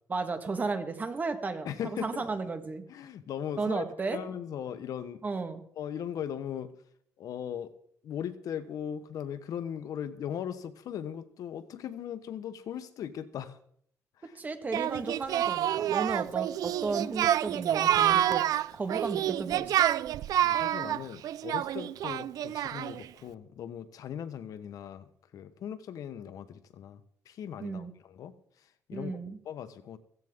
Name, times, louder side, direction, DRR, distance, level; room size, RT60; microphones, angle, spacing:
voice 1, 0.1-2.8 3.6-4.2 5.2-5.6 14.4-19.9 27.6-27.9 28.9-29.4, right 4 dB, 25° right, 8 dB, 1.6 m, -34 dB
voice 2, 1.6-2.2 2.9-3.8 4.1-5.2 5.8-6.7 7.2-7.7 8.0-13.6 14.2-14.4 20.4-29.2 29.4-30.0, left 9 dB, 70° left, 11 dB, 1.1 m, -39 dB
Singing, 14.7-23.1, right 11 dB, 75° right, 0.4 m, -28 dB
16.0 x 15.5 x 3.7 m, 0.65 s
cardioid pair, 140°, 6 cm